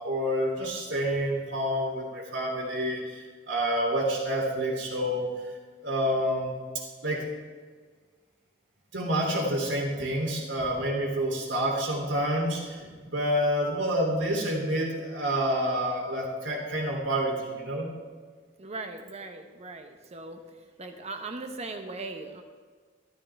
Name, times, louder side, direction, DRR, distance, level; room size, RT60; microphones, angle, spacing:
voice 1, 0.0-5.3 5.8-7.3 8.9-17.9, equal, 85° right, -1 dB, 3.0 m, -28 dB
voice 2, 18.6-20.4 20.8-22.4, right 3 dB, 35° right, 5 dB, 0.8 m, -39 dB
13.0 x 13.0 x 3.5 m, 1.5 s
head